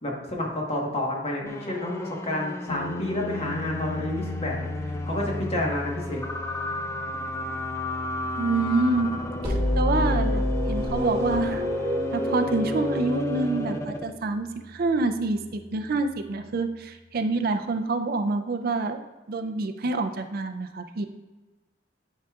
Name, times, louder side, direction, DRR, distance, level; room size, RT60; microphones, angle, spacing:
voice 1, 0.0-6.2, left 1 dB, 35° left, -1 dB, 1.2 m, -30 dB
sound 1, 1.5-14.2, left 2 dB, 15° left, 0.4 m, -33 dB
sound 2, 2.7-16.7, left 2 dB, 85° left, 0.7 m, -39 dB
voice 2, 8.4-9.1 9.4-10.4 10.7-11.7 12.1-19.0 19.3-21.1, right 3 dB, 55° right, 7 dB, 0.4 m, -27 dB
sound 3, 9.4-14.2, equal, 15° right, 1.1 m, -28 dB
9.6 x 4.8 x 2.4 m, 1.2 s
head